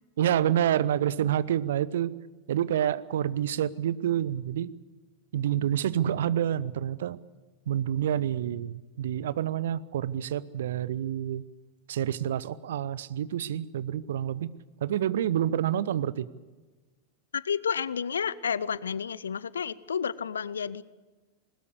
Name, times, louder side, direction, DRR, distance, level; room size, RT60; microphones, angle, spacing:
voice 1, 0.2-2.1 2.5-4.7 5.3-7.2 7.7-11.4 11.9-14.5 14.8-16.3, right 10 dB, 60° right, 18 dB, 0.8 m, -28 dB
voice 2, 17.3-20.8, left 7 dB, 70° left, 20 dB, 0.7 m, -31 dB
21.0 x 20.0 x 8.3 m, 1.3 s
figure-of-eight pair, 90°, 0 cm